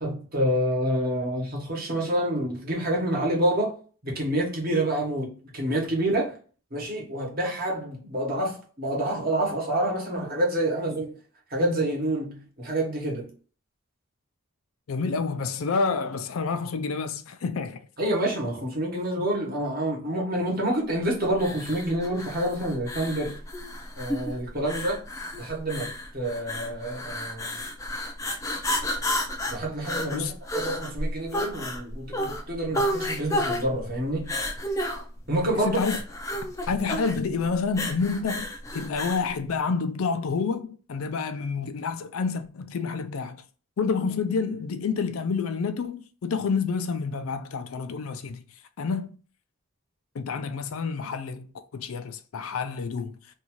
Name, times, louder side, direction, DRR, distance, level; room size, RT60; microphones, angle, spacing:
voice 1, 0.0-3.8 4.0-6.4 6.7-11.2 11.5-13.3 18.0-23.3 24.0-25.0 25.4-27.6 29.5-34.4 35.3-35.8, right 1 dB, 45° right, 1.1 m, -28 dB
voice 2, 14.9-17.8 30.1-30.3 35.6-36.0 36.7-43.4 43.8-48.4 48.8-49.2 50.1-51.5 51.7-53.2, left 5 dB, 75° left, 0.4 m, -28 dB
sound 1, 21.4-39.3, left 1 dB, 15° left, 0.4 m, -31 dB
2.6 x 2.4 x 2.9 m
head